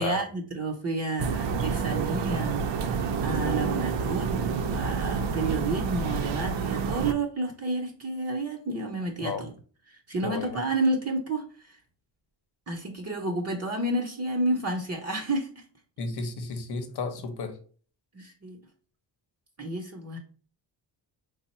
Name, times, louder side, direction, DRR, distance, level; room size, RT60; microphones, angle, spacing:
voice 1, 0.0-9.5 9.9-11.8 12.7-15.6 18.1-18.6 19.6-20.2, right 2 dB, 35° right, 2 dB, 0.7 m, -30 dB
sound 1, 1.2-7.1, right 6 dB, 75° right, 0.6 m, -29 dB
voice 2, 10.2-10.6 16.0-17.6, left 4 dB, 60° left, 7 dB, 0.8 m, -33 dB
3.6 x 2.0 x 4.1 m, 0.43 s
cardioid pair, 85°, 44 cm